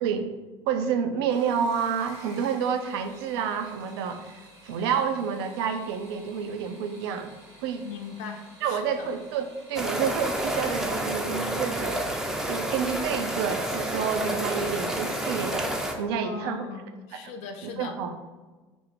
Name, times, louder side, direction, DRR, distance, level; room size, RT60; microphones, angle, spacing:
voice 1, 0.7-7.3 7.6-7.9 8.6-12.0 12.5-15.7 16.0-16.7 17.1-17.3 17.6-18.2, right 7 dB, 65° right, 7 dB, 0.4 m, -29 dB
sound 1, 1.3-11.1 12.3-12.8 13.3-13.7 14.0-14.1, right 1 dB, 90° right, 1.3 m, -51 dB
voice 2, 7.8-9.1 16.2-17.9, left 6 dB, 55° left, 5 dB, 0.4 m, -39 dB
sound 2, 9.8-15.9, right 1 dB, 5° right, 0.4 m, -29 dB
3.0 x 2.0 x 4.0 m, 1.3 s
figure-of-eight pair, 65°, 14 cm